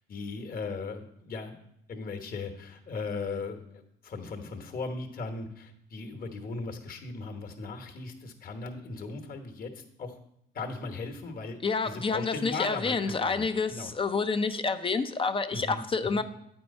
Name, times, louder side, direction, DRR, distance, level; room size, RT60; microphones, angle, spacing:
voice 1, 0.1-1.6 1.9-10.2 10.5-11.6 11.8-13.4 13.7-13.9 15.5-16.2, left 4 dB, 45° left, 5 dB, 1.1 m, -37 dB
voice 2, 11.6-16.2, left 4 dB, 25° left, 9 dB, 0.4 m, -28 dB
8.8 x 4.6 x 5.2 m, 0.76 s
cardioid pair, 90°, 20 cm